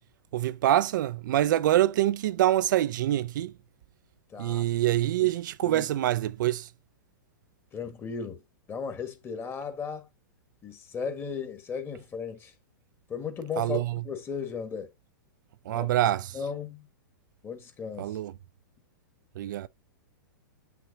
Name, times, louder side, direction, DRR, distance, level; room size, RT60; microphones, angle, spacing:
voice 1, 0.3-3.5 4.4-6.7 13.6-14.0 15.7-16.4 18.0-18.3 19.4-19.7, right 13 dB, 65° right, 0.4 m, -25 dB
voice 2, 4.3-4.6 5.2-5.3 5.6-5.9 7.7-8.4 8.7-10.1 10.6-12.5 13.1-14.9 15.7-15.9 16.3-16.9 17.4-18.2, left 6 dB, 20° left, 1.5 m, -36 dB
8.0 x 5.9 x 2.7 m
hypercardioid pair, 125°, 11 cm